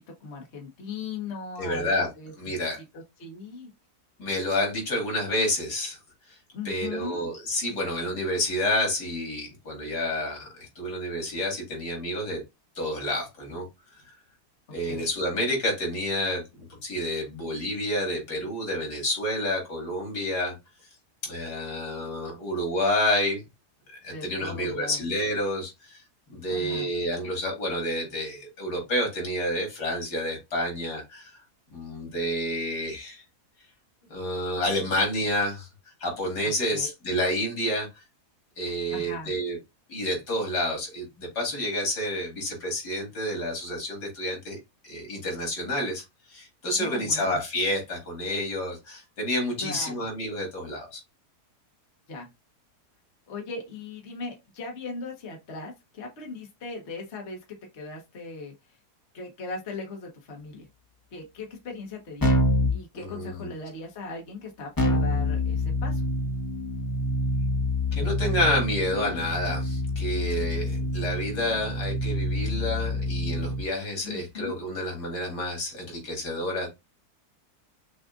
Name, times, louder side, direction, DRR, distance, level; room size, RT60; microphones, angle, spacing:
voice 1, 0.2-1.9 2.2-2.5 2.9-3.7 6.5-7.3 14.9-15.1 24.1-25.0 26.5-26.9 36.4-36.9 38.9-39.3 46.8-47.4 49.6-50.0 52.1-52.3 53.3-58.8 59.1-60.7 61.1-62.4 62.7-66.0 70.8-70.9 74.0-74.5, left 3 dB, 45° left, 1.3 m, -39 dB
voice 2, 1.6-2.1 2.4-2.8 4.2-6.0 6.6-12.4 12.8-13.7 14.7-16.4 16.7-20.6 21.2-23.4 24.0-26.0 26.3-31.4 31.7-33.2 34.1-35.7 36.0-38.0 38.6-39.6 39.9-44.6 44.8-46.0 46.3-51.0 62.9-63.5 67.9-76.7, left 1 dB, 80° left, 2.6 m, -29 dB
Keyboard (musical), 62.2-62.8 64.8-73.6, left 1 dB, 15° left, 0.8 m, -27 dB
6.0 x 2.5 x 2.5 m
omnidirectional pair, 1.7 m